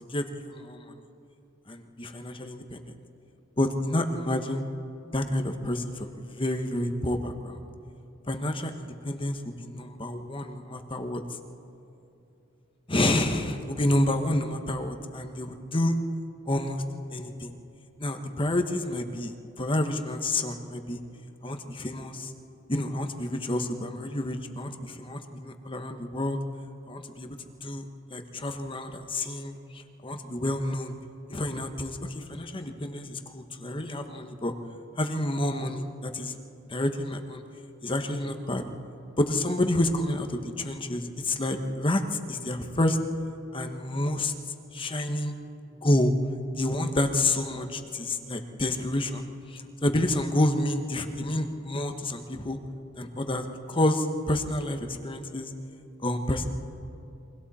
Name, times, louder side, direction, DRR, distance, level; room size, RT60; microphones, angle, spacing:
voice 1, 0.1-0.9 1.7-2.9 3.6-4.7 5.1-7.6 8.3-11.2 12.9-16.0 16.5-16.8 17.1-17.6 18.0-21.0 21.4-22.3 22.7-26.4 26.9-27.3 27.6-27.8 28.1-30.9 31.3-34.5 35.0-36.3 36.7-37.4 37.8-38.6 39.2-43.0 43.5-44.3 44.7-45.3 45.8-46.1 46.6-49.2 49.5-52.6 53.0-55.5 56.0-56.5, left 1 dB, 25° left, 6 dB, 1.2 m, -29 dB
29.5 x 24.0 x 4.3 m, 2.8 s
head